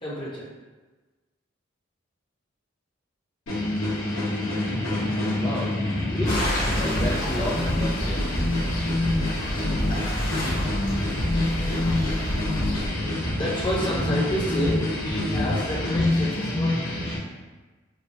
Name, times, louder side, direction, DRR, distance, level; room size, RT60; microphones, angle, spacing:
voice 1, 0.0-0.4 13.0-17.2, equal, 25° left, -7 dB, 1.0 m, -30 dB
sound 1, 3.5-17.2, left 1 dB, 85° left, 1.1 m, -26 dB
voice 2, 5.4-5.7 6.1-6.4 6.7-8.5, left 1 dB, 10° left, -7 dB, 0.4 m, -32 dB
sound 2, 6.2-12.9, equal, 45° left, 1.2 m, -29 dB
4.8 x 2.3 x 2.7 m, 1.2 s
head